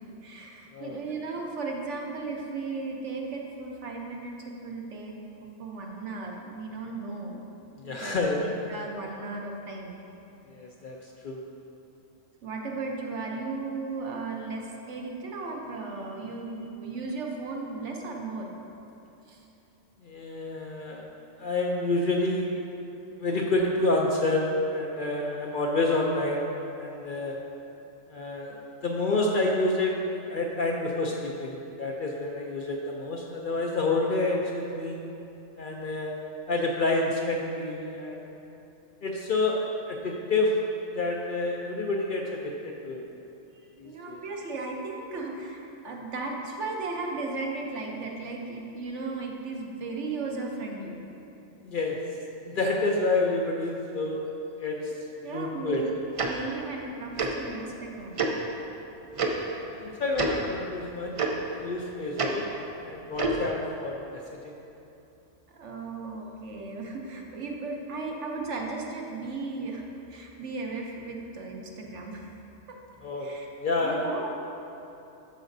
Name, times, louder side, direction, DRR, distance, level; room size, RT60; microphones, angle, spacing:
voice 1, 0.2-5.1 5.4-7.4 7.8-10.0 12.4-18.5 19.3-19.4 43.8-51.0 55.2-55.9 56.2-58.2 61.2-61.5 65.5-72.3 72.7-72.8 73.2-73.5 73.8-74.5, right 3 dB, 70° right, 0 dB, 1.1 m, -36 dB
voice 2, 7.8-8.4 10.5-11.4 20.0-21.0 21.4-22.6 23.2-26.5 26.7-27.4 28.1-35.0 35.6-36.1 36.5-38.3 39.0-40.6 40.9-43.0 43.8-44.2 51.6-52.0 52.4-54.3 54.6-54.9 55.3-55.8 59.6-61.1 61.5-62.5 62.8-64.6 73.0-73.3 73.6-74.0, left 2 dB, 55° left, -1 dB, 0.6 m, -28 dB
Tick-tock, 56.2-56.3 57.2-57.3 58.2-58.3 59.2-59.3 60.1-60.3 61.2-61.3 62.2-62.3 63.1-63.4, right 4 dB, 50° right, 0.4 m, -26 dB
13.0 x 5.0 x 2.6 m, 2.9 s
omnidirectional pair, 1.3 m